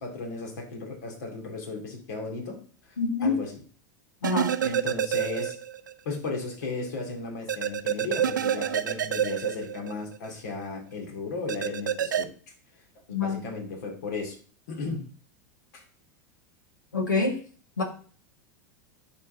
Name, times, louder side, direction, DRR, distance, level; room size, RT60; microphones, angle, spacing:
voice 1, 0.0-2.6 3.2-3.6 4.6-5.6 6.1-12.3 13.1-14.4 14.7-15.1 15.7-15.8, left 3 dB, 70° left, 3 dB, 2.2 m, -35 dB
voice 2, 3.0-3.4 4.2-4.6 13.1-13.4 16.9-17.4 17.8-17.9, left 4 dB, 90° left, 4 dB, 1.7 m, -26 dB
sound 1, 4.2-5.9 6.2-6.3 7.5-10.3 11.5-12.2, right 9 dB, 85° right, 0.4 m, -28 dB
11.0 x 4.1 x 2.6 m, 0.41 s
hypercardioid pair, 90°, 10 cm